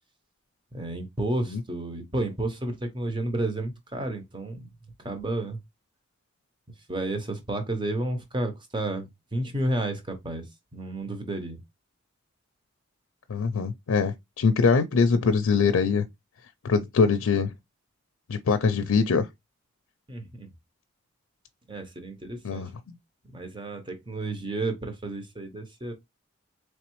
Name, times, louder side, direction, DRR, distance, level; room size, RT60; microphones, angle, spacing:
voice 1, 0.7-4.7 5.0-5.6 6.9-10.4 10.7-11.6 20.1-20.5 21.7-22.6 23.3-25.9, right 1 dB, 20° right, 0.8 m, -31 dB
voice 2, 13.3-16.1 16.6-17.5 18.3-19.3 22.4-23.0, left 5 dB, 85° left, 0.4 m, -23 dB
4.0 x 3.2 x 3.0 m
head